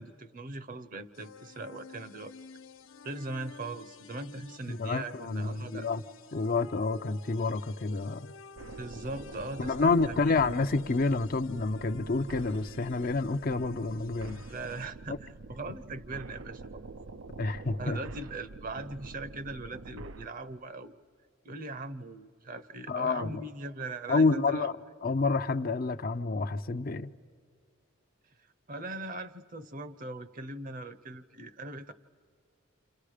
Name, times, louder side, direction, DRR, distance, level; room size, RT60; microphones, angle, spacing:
voice 1, 0.0-2.3 3.0-5.9 8.8-10.4 14.5-16.6 17.8-21.0 21.4-24.7 28.7-31.9, right 2 dB, 40° right, 0.8 m, -40 dB
sound 1, 1.1-14.9, left 4 dB, 80° left, 0.8 m, -52 dB
voice 2, 4.7-6.0 6.3-8.3 9.6-14.4 17.4-18.0 22.9-23.4 24.1-24.7 25.0-27.1, left 3 dB, 45° left, 0.5 m, -28 dB
sound 2, 8.6-20.3, right 3 dB, 75° right, 0.6 m, -46 dB
30.0 x 27.5 x 5.0 m
head